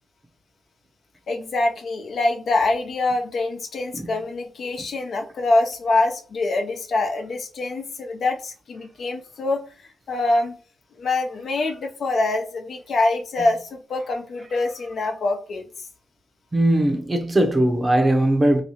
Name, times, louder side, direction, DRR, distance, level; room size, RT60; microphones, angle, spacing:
voice 1, 1.3-9.6 10.1-10.6 11.0-15.6, left 2 dB, 65° left, 0.7 m, -24 dB
voice 2, 16.5-18.6, right 1 dB, 25° right, 0.8 m, -19 dB
3.2 x 2.8 x 3.1 m
cardioid pair, 85°, 0 cm